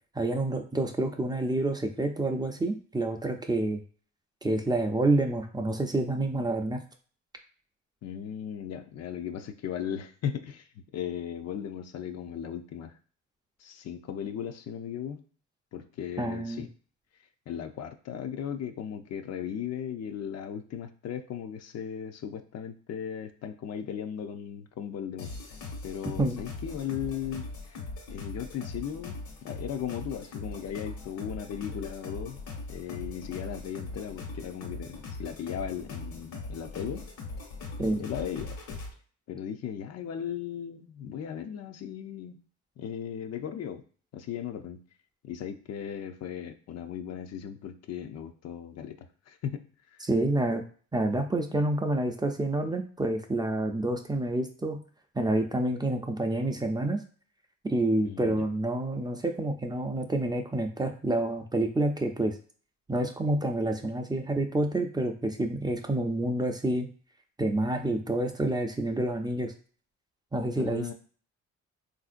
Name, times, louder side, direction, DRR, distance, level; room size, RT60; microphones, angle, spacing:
voice 1, 0.1-3.8 4.4-6.8 16.2-16.7 26.2-26.4 37.8-38.0 50.0-50.6 50.9-54.8 55.2-57.0 57.6-62.3 62.9-66.9 67.4-69.5 70.3-70.9, right 1 dB, 15° right, 4 dB, 0.4 m, -28 dB
voice 2, 8.0-13.0 13.6-15.2 15.7-16.7 17.5-25.3 25.8-27.8 28.1-32.4 32.7-37.0 37.8-38.6 39.3-42.4 42.8-43.8 44.1-44.8 45.2-50.1 58.0-58.4 70.5-70.9, left 8 dB, 55° left, 7 dB, 0.5 m, -37 dB
sound 1, 25.2-38.9, left 3 dB, 80° left, 1.3 m, -40 dB
3.6 x 2.6 x 2.4 m, 0.43 s
cardioid pair, 90°, 30 cm